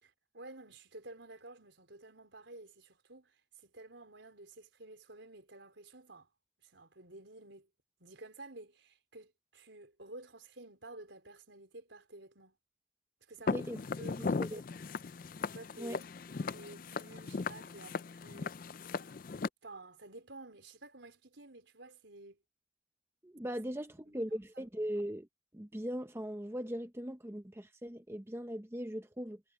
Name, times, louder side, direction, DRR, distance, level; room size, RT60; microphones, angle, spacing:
voice 1, 0.0-3.4 3.6-6.3 6.6-7.7 8.0-12.6 13.3-13.7 14.0-14.8 15.2-16.0 16.5-18.5 19.6-22.4 24.0-24.4, right 2 dB, 80° right, 4.4 m, -52 dB
Walk footsteps, 13.5-19.5, left 4 dB, 50° left, 0.4 m, -38 dB
voice 2, 14.2-14.6 15.8-16.0 23.2-25.3 25.5-29.4, equal, 15° right, 0.7 m, -39 dB
head